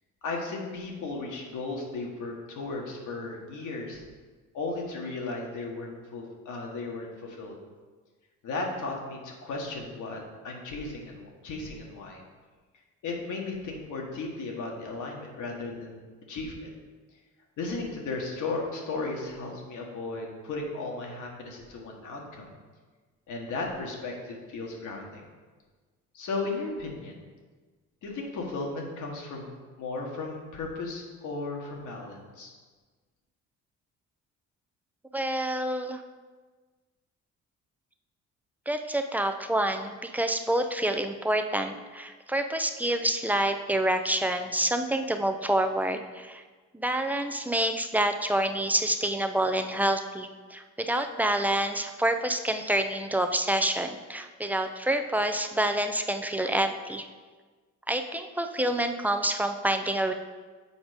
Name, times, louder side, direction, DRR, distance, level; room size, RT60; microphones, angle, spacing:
voice 1, 0.2-4.0 4.5-7.5 8.4-12.2 13.0-16.7 17.6-22.5 23.3-25.2 26.1-27.2 28.0-32.5, left 3 dB, 80° left, 0 dB, 1.7 m, -35 dB
voice 2, 35.1-36.0 38.7-46.4 46.7-57.1 57.9-60.1, right 1 dB, 5° right, 6 dB, 0.5 m, -27 dB
7.2 x 4.9 x 5.1 m, 1.4 s
cardioid pair, 90°, 30 cm